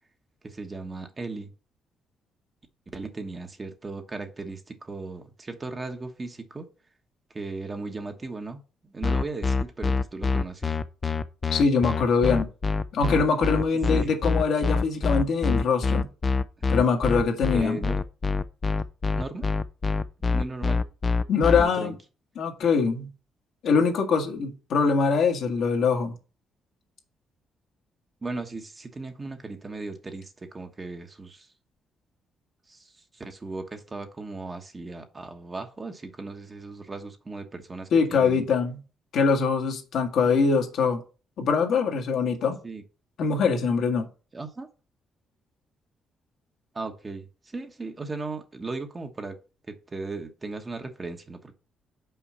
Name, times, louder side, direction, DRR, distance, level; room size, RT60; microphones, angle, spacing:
voice 1, 0.4-1.5 2.9-6.7 7.3-10.8 13.9-14.1 17.5-18.0 19.2-19.5 20.3-20.8 21.5-21.9 28.2-31.5 32.7-38.5 42.6-42.8 44.3-44.7 46.7-49.4 49.7-51.5, right 3 dB, 25° right, 1.1 m, -37 dB
sound 1, 9.0-21.6, left 4 dB, 30° left, 0.5 m, -25 dB
voice 2, 11.5-12.5 12.9-16.1 16.7-17.8 21.3-21.9 22.3-23.1 23.6-26.1 37.9-38.8 39.1-41.0 41.4-42.6 43.2-44.1, left 5 dB, 70° left, 1.5 m, -23 dB
5.7 x 4.6 x 5.5 m
cardioid pair, 90°, 0 cm